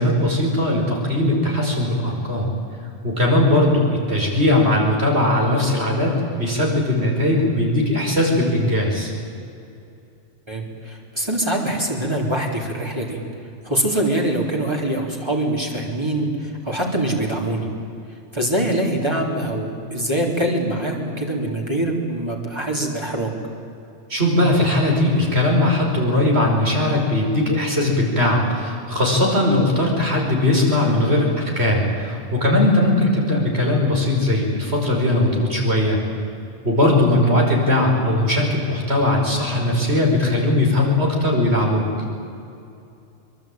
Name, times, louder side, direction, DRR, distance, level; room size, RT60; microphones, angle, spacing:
voice 1, 0.0-2.5 3.0-9.1 24.1-36.0 36.6-41.9, left 1 dB, 55° right, 0 dB, 5.7 m, -19 dB
voice 2, 10.5-13.2 13.6-17.7 18.3-23.3, right 1 dB, 20° right, -1 dB, 3.8 m, -24 dB
24.0 x 23.0 x 9.1 m, 2.6 s
omnidirectional pair, 1.3 m